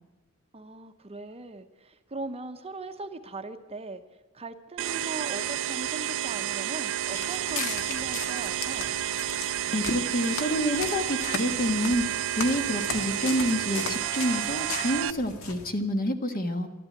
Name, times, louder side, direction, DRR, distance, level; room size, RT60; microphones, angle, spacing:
voice 1, 0.5-4.0 4.3-8.9, right 3 dB, 30° right, 8 dB, 0.8 m, -39 dB
sound 1, 4.8-15.1, right 12 dB, 60° right, 0.5 m, -31 dB
Walk footsteps, 7.0-15.7, left 3 dB, 65° left, 1.8 m, -38 dB
voice 2, 9.7-16.7, equal, 40° left, 6 dB, 1.6 m, -28 dB
13.0 x 12.0 x 8.7 m, 1.2 s
head